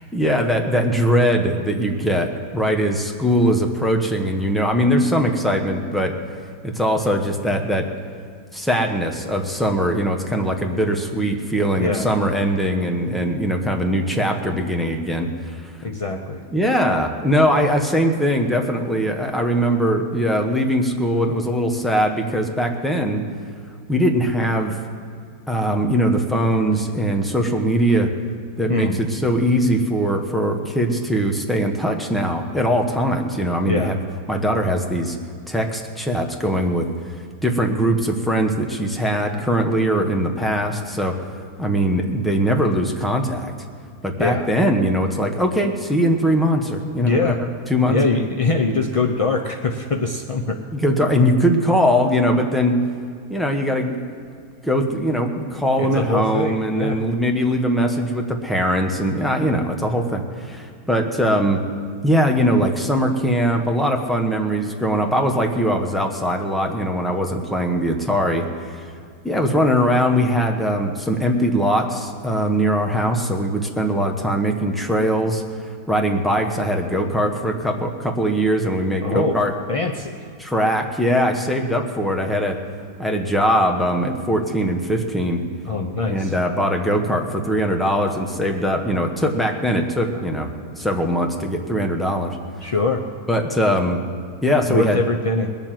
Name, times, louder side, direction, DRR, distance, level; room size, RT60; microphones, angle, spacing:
voice 1, 0.0-6.2 6.6-7.9 8.5-15.7 16.5-23.2 23.9-24.8 25.5-28.1 28.6-34.0 34.3-35.2 35.5-36.9 37.4-41.2 41.6-43.5 44.0-47.3 47.7-48.0 50.7-52.8 53.3-53.9 54.6-61.6 62.0-68.8 69.2-75.4 75.9-79.5 80.4-82.6 83.0-85.4 86.1-90.5 90.8-92.4 93.3-94.0 94.4-95.0, equal, ahead, 2 dB, 0.9 m, -21 dB
voice 2, 11.8-12.1 15.8-16.4 28.7-28.9 33.7-33.9 44.2-44.5 47.0-47.4 47.9-50.6 55.8-57.0 79.0-79.4 79.7-80.2 85.7-86.3 92.6-93.0 94.7-95.5, left 3 dB, 60° left, 3 dB, 0.3 m, -22 dB
20.5 x 7.1 x 7.5 m, 2.2 s
omnidirectional pair, 1.6 m